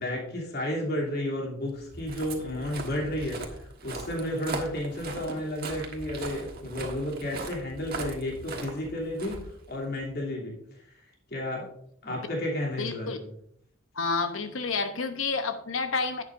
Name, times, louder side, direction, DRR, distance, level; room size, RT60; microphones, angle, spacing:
voice 1, 0.0-11.0 11.3-11.7 12.0-13.3, left 1 dB, 50° left, -2 dB, 2.9 m, -32 dB
Walk footsteps, 1.8-10.0, right 3 dB, 50° right, 1.4 m, -39 dB
voice 2, 12.8-13.2 14.0-16.2, left 4 dB, 80° left, 7 dB, 0.8 m, -29 dB
11.0 x 8.5 x 2.6 m, 0.68 s
head